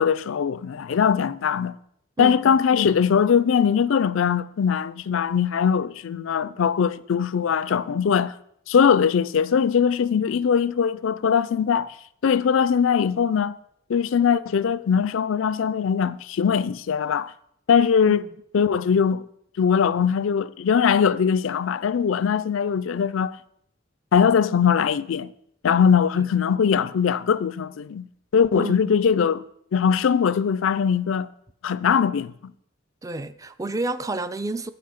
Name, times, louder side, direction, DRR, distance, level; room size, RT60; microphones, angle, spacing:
voice 1, 0.0-1.7 2.2-8.3 8.7-11.9 12.2-13.5 13.9-17.3 17.7-18.2 18.5-19.2 19.6-23.4 24.1-25.3 25.6-28.1 28.3-29.4 29.7-31.3 31.6-32.3, left 7 dB, 70° left, 0.4 m, -21 dB
voice 2, 2.2-2.6 18.1-18.4 26.2-26.3 28.5-28.9 33.0-34.7, right 2 dB, 15° right, 0.3 m, -30 dB
8.1 x 5.7 x 6.5 m
head